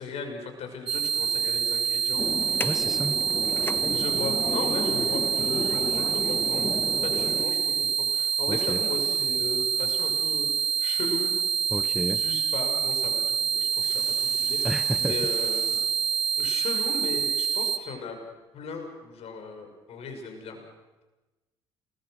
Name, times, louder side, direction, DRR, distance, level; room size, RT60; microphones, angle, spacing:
voice 1, 0.0-2.2 2.5-2.6 3.9-6.7 7.0-11.3 12.1-14.6 15.0-15.8 16.4-18.2 18.5-20.6, left 4 dB, 50° left, 5 dB, 6.1 m, -37 dB
sound 1, 0.9-17.8, right 7 dB, 90° right, 1.1 m, -26 dB
sound 2, 2.2-7.5, left 3 dB, 15° left, 1.3 m, -34 dB
voice 2, 2.6-3.2 8.5-8.8 11.7-12.2 14.6-15.2, equal, ahead, 13 dB, 0.9 m, -31 dB
Water tap faucet / Sink (filling or washing), 13.6-17.4 17.9-18.0, left 7 dB, 75° left, 4.4 m, -49 dB
29.0 x 21.5 x 6.4 m, 1.1 s
figure-of-eight pair, 55°, 13 cm